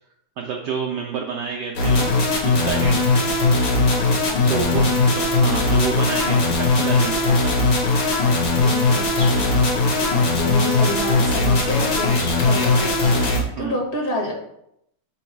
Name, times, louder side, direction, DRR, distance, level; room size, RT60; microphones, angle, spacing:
voice 1, 0.4-2.1 2.4-3.0 4.5-4.8 5.1-7.5 13.6-13.8, right 6 dB, 70° right, 1 dB, 1.0 m, -29 dB
sound 1, 1.8-13.4, left 3 dB, 80° left, 2.3 m, -19 dB
voice 2, 4.3-5.1 8.6-14.3, left 1 dB, 45° left, -2 dB, 2.2 m, -30 dB
7.7 x 3.1 x 4.6 m, 0.76 s
omnidirectional pair, 2.4 m